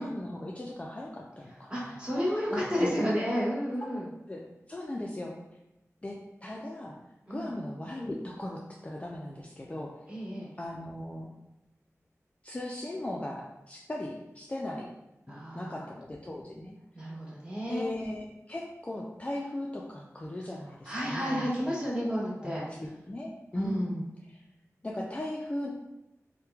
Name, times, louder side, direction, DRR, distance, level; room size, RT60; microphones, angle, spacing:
voice 1, 0.0-2.0 2.5-3.0 4.3-4.4 4.7-5.3 6.0-6.1 6.4-7.0 7.3-9.9 10.6-11.3 12.4-14.9 15.3-16.7 17.7-21.5 22.0-22.1 22.4-24.4 24.8-25.7, left 1 dB, 25° left, -2 dB, 0.3 m, -37 dB
voice 2, 1.7-4.1 7.3-7.5 10.1-10.5 15.3-15.9 16.9-17.9 20.8-22.6 23.5-23.9, equal, 20° right, -7 dB, 1.2 m, -31 dB
3.0 x 2.1 x 2.3 m, 0.92 s
wide cardioid pair, 45°, 5 cm